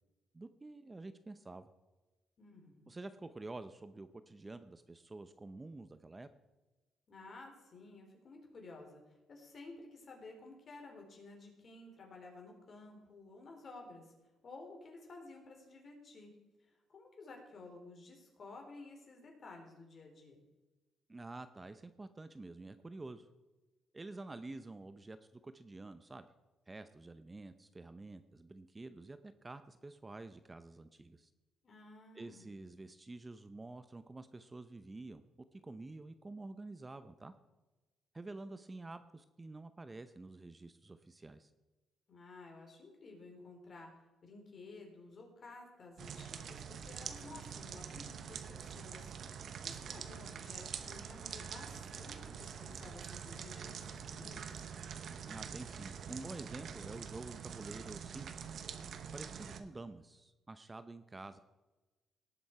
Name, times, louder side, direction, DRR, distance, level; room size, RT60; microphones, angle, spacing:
voice 1, 0.3-1.7 2.9-6.3 21.1-23.3 23.9-25.2 25.4-26.3 26.7-31.3 32.1-35.2 35.5-37.3 38.1-41.5 55.2-58.5 59.1-61.4, right 2 dB, 20° right, 11 dB, 0.6 m, -49 dB
voice 2, 2.4-2.9 7.1-14.1 14.4-16.3 16.6-20.4 31.6-32.5 42.1-43.9 44.2-54.7, left 3 dB, 45° left, 1 dB, 4.0 m, -53 dB
sound 1, 46.0-59.6, right 7 dB, 60° right, 1.0 m, -45 dB
18.0 x 7.1 x 4.8 m, 1.2 s
cardioid pair, 90°, 0 cm